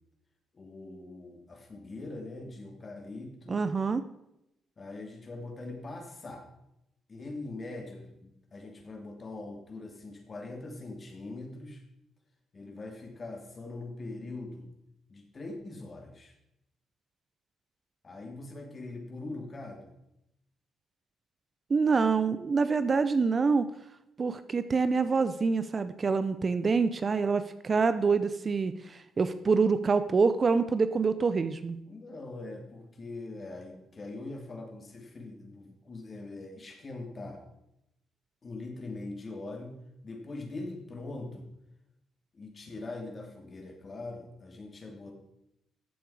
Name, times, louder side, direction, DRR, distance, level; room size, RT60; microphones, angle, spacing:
voice 1, 0.5-3.6 4.8-6.4 7.1-11.8 12.5-14.7 15.1-16.3 18.0-19.9 31.9-37.4 38.4-41.5 42.3-45.1, left 2 dB, 35° left, 3 dB, 2.8 m, -42 dB
voice 2, 3.5-4.0 21.7-23.7 24.2-31.8, right 4 dB, 35° right, 12 dB, 0.6 m, -26 dB
14.5 x 7.6 x 4.8 m, 0.84 s
cardioid pair, 90°, 0 cm